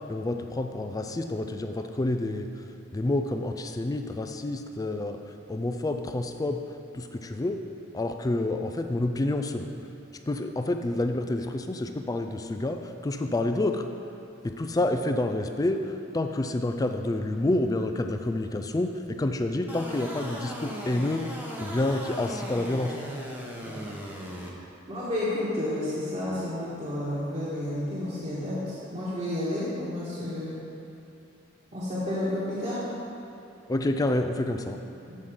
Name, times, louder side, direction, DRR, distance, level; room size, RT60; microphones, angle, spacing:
voice 1, 0.1-2.5 2.9-5.2 5.5-6.6 6.9-7.6 7.9-9.7 10.3-13.8 14.4-21.2 21.6-23.0 33.7-34.8, left 2 dB, 20° left, 6 dB, 0.3 m, -28 dB
sound 1, 19.7-24.5, equal, 10° right, 0.9 m, -38 dB
voice 2, 24.9-30.6 31.7-32.9 35.1-35.2, left 1 dB, 35° right, -10 dB, 1.4 m, -31 dB
7.6 x 5.6 x 5.0 m, 2.8 s
head